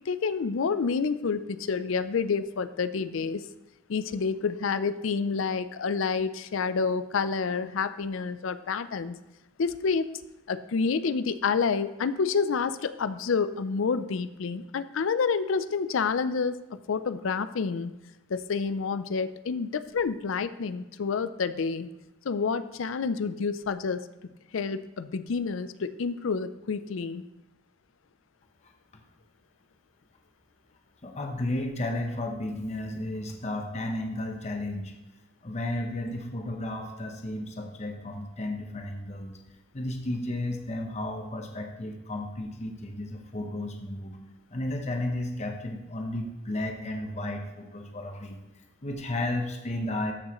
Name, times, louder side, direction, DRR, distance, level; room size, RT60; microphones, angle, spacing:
voice 1, 0.1-3.5 3.9-9.2 9.6-10.1 10.5-16.6 16.9-17.9 18.3-21.9 22.2-24.0 24.5-27.2, left 5 dB, 80° left, 13 dB, 0.5 m, -28 dB
voice 2, 31.0-34.9 35.4-39.4 39.7-44.2 44.5-48.4 48.8-50.1, left 1 dB, 35° left, 3 dB, 0.9 m, -33 dB
13.5 x 6.3 x 3.0 m, 1.0 s
head